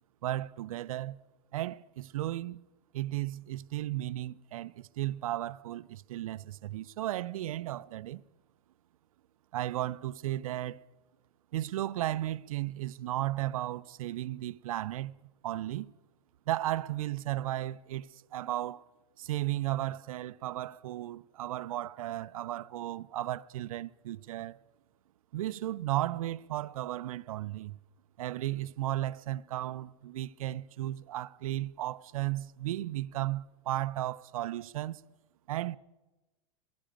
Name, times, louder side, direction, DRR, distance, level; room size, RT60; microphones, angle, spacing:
voice 1, 0.2-1.2 1.5-2.6 2.9-8.2 9.5-10.8 11.5-15.1 15.4-15.9 16.5-18.8 19.2-24.6 25.3-27.8 28.2-35.0 35.5-35.8, right 14 dB, 90° right, 0.5 m, -35 dB
18.5 x 14.0 x 5.1 m
supercardioid pair, 130°, 17 cm